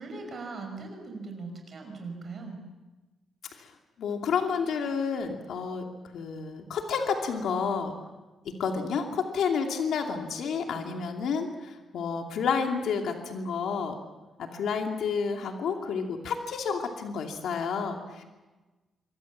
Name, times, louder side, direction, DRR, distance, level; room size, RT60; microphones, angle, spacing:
voice 1, 0.0-2.6, right 3 dB, 40° right, 3 dB, 5.5 m, -39 dB
voice 2, 3.5-7.9 8.4-14.0 14.4-18.2, left 5 dB, 75° left, 3 dB, 2.7 m, -30 dB
27.0 x 24.5 x 7.5 m, 1.2 s
wide cardioid pair, 170°, 0 cm